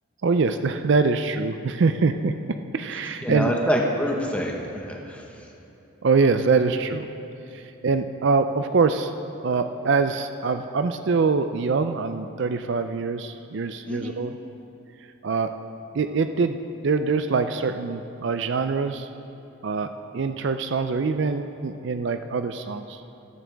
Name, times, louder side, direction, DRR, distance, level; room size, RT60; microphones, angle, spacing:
voice 1, 0.2-2.3 2.7-3.5 6.0-7.1 7.5-9.1 9.4-14.4 15.2-15.5 15.9-16.6 16.8-19.1 19.6-23.0, right 4 dB, 55° right, 9 dB, 0.4 m, -24 dB
voice 2, 3.2-5.2 13.9-14.1, equal, 5° left, -1 dB, 1.2 m, -26 dB
14.0 x 13.5 x 3.5 m, 3.0 s
head